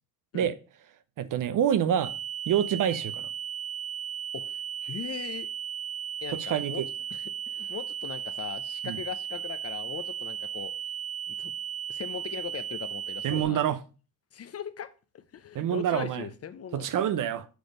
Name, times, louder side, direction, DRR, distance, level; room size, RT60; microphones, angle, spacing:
voice 1, 1.2-2.1 2.5-3.3 6.3-6.9 8.8-9.0 13.2-13.8 15.5-16.3 16.7-17.5, right 9 dB, 55° right, 0.6 m, -27 dB
sound 1, 2.0-13.4, right 8 dB, 35° right, 1.4 m, -36 dB
voice 2, 4.3-5.5 6.2-6.8 7.1-10.7 11.3-11.5 11.9-13.6 14.3-14.9 15.1-16.9, left 9 dB, 40° left, 0.6 m, -39 dB
6.2 x 3.3 x 5.1 m
supercardioid pair, 75°, 40 cm